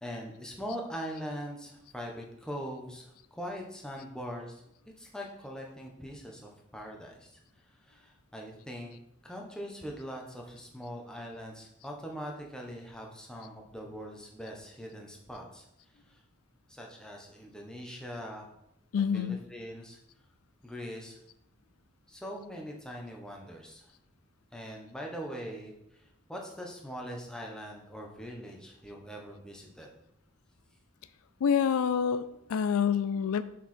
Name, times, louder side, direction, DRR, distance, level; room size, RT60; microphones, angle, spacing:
voice 1, 0.0-4.6 5.0-7.3 7.8-9.0 9.2-15.6 16.1-16.2 16.7-18.5 19.1-20.0 20.6-21.2 22.1-23.9 24.5-25.7 26.0-29.9, equal, 5° left, 0 dB, 1.0 m, -42 dB
voice 2, 18.9-19.4 31.4-33.4, left 7 dB, 90° left, 14 dB, 0.4 m, -27 dB
6.7 x 4.8 x 4.3 m, 0.80 s
head